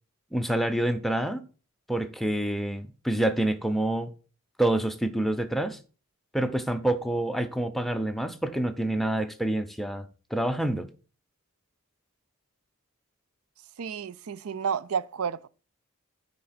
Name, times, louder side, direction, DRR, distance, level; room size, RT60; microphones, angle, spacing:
voice 1, 0.3-1.4 1.9-4.1 4.6-5.8 6.3-10.9, right 1 dB, ahead, 0.6 m, -27 dB
voice 2, 13.8-15.5, right 6 dB, 90° right, 0.5 m, -31 dB
9.5 x 3.8 x 5.8 m
head